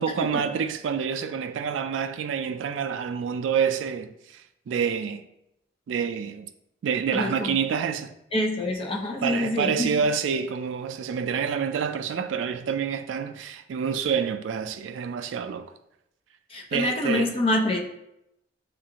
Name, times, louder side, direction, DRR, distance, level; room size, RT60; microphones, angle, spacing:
voice 1, 0.0-5.2 5.9-6.5 6.8-8.1 9.2-15.7 16.7-17.3, right 6 dB, 90° right, 0.3 m, -27 dB
voice 2, 7.1-7.5 8.3-9.9 16.5-17.8, left 1 dB, 30° left, 0.6 m, -26 dB
7.4 x 2.5 x 2.8 m
head